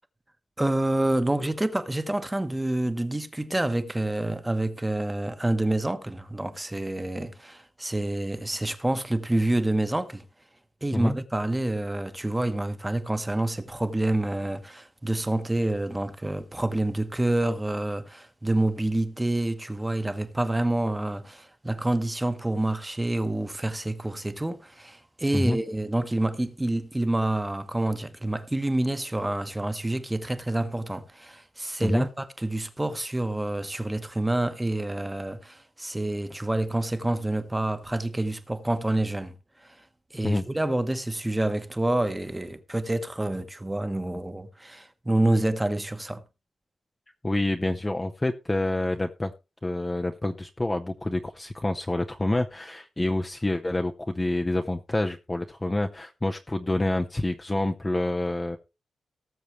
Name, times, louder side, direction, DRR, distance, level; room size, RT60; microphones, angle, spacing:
voice 1, 0.6-10.2 10.8-39.3 40.1-46.2, right 1 dB, 10° right, 1.0 m, -28 dB
voice 2, 47.2-49.3 49.6-58.6, left 1 dB, 15° left, 0.6 m, -27 dB
18.5 x 7.0 x 3.2 m
wide cardioid pair, 175°, 0 cm